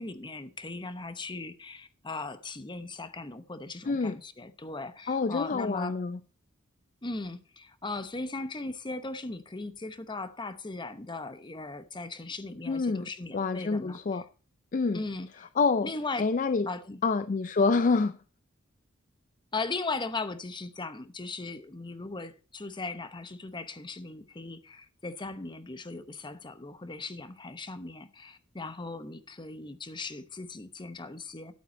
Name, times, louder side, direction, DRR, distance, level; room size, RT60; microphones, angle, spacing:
voice 1, 0.0-6.0 7.0-14.3 14.9-15.5 15.8-16.3 16.6-17.0 19.5-31.5, left 3 dB, 20° left, 0.8 m, -38 dB
voice 2, 3.8-4.2 5.1-6.2 12.7-14.2 14.7-15.0 15.6-15.9 16.2-16.7 17.0-18.2, left 4 dB, 40° left, 0.4 m, -27 dB
11.5 x 8.7 x 4.1 m
head